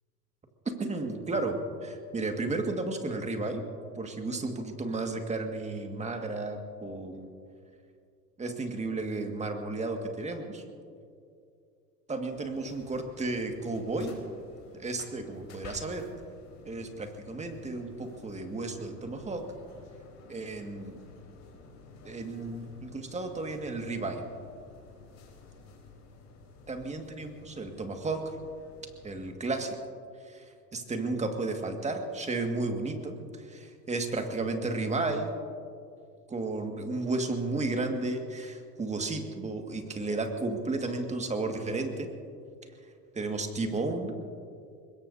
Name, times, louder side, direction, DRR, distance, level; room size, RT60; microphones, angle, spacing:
voice 1, 0.8-3.6 4.0-7.3 8.4-10.6 12.1-14.1 14.8-16.1 16.7-19.4 20.3-21.0 22.0-24.2 26.7-28.4 29.0-29.8 30.3-30.4 30.7-33.2 33.5-35.3 36.3-42.1 43.2-44.2, right 3 dB, 15° right, 5 dB, 1.9 m, -33 dB
sound 1, 12.3-29.3, left 4 dB, 35° left, 4.3 m, -52 dB
24.0 x 21.5 x 2.7 m, 2.4 s
hypercardioid pair, 100°, 48 cm